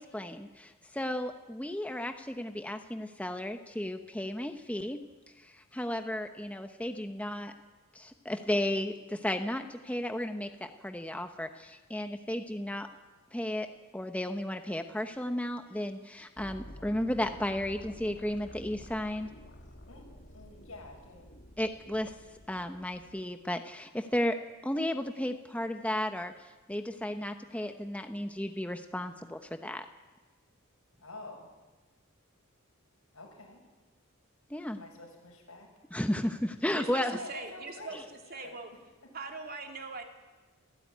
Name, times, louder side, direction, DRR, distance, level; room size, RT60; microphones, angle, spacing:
voice 1, 0.0-5.0 5.4-7.5 7.9-12.9 13.3-13.7 13.9-19.3 21.6-22.1 22.5-24.4 24.6-26.3 26.7-29.8 34.5-34.8 35.9-37.1, left 1 dB, 5° left, 6 dB, 0.9 m, -34 dB
sound 1, 16.4-23.2, left 1 dB, 55° left, 2.7 m, -51 dB
voice 2, 19.9-21.3 31.0-31.5 33.1-33.6 34.7-35.7 36.1-36.3 37.0-38.0 38.3-38.5 39.0-39.1, left 2 dB, 90° left, 1 dB, 7.5 m, -48 dB
voice 3, 36.8-38.0 38.3-38.7 39.1-40.0, right 4 dB, 45° right, 3 dB, 2.8 m, -41 dB
29.0 x 16.0 x 9.4 m, 1.3 s
head